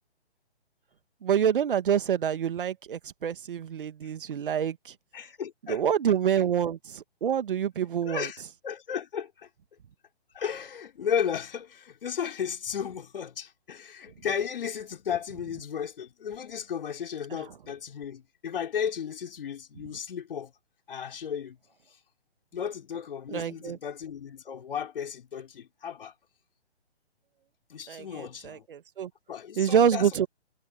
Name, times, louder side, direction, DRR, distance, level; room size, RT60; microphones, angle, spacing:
voice 1, 1.2-4.9 5.7-8.3 23.3-23.8 27.9-29.1 29.6-30.3, right 8 dB, 50° right, 1.9 m, -27 dB
voice 2, 5.1-5.8 8.0-9.5 10.3-20.5 20.9-21.6 21.9-22.0 22.5-26.1 27.7-28.7 29.3-30.3, left 8 dB, 55° left, 3.8 m, -34 dB
figure-of-eight pair, 140°, 34 cm